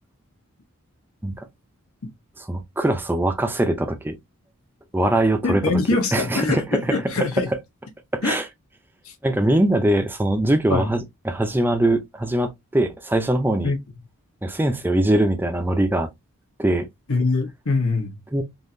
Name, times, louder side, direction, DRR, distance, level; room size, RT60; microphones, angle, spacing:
voice 1, 2.5-4.2 4.9-5.7 6.1-6.9 8.1-8.5 9.2-13.7 14.4-16.1 16.6-16.9 18.3-18.4, right 1 dB, 10° right, 0.5 m, -22 dB
voice 2, 5.4-7.5 8.2-8.4 9.0-9.1 10.7-10.9 13.6-13.8 17.1-18.2, left 3 dB, 70° left, 1.0 m, -23 dB
3.6 x 2.8 x 2.6 m
head